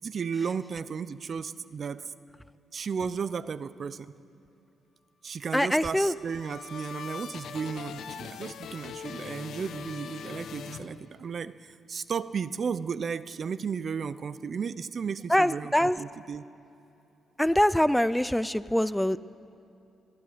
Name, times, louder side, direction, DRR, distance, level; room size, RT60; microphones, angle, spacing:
voice 1, 0.0-2.1 2.7-4.1 5.2-16.4, right 6 dB, 50° right, 15 dB, 0.7 m, -34 dB
voice 2, 5.5-6.1 15.3-16.0 17.4-19.2, left 1 dB, 5° left, 16 dB, 0.4 m, -24 dB
sound 1, 6.1-11.5, left 7 dB, 75° left, 1.1 m, -41 dB
22.5 x 12.0 x 9.8 m, 2.7 s
cardioid pair, 80°, 0 cm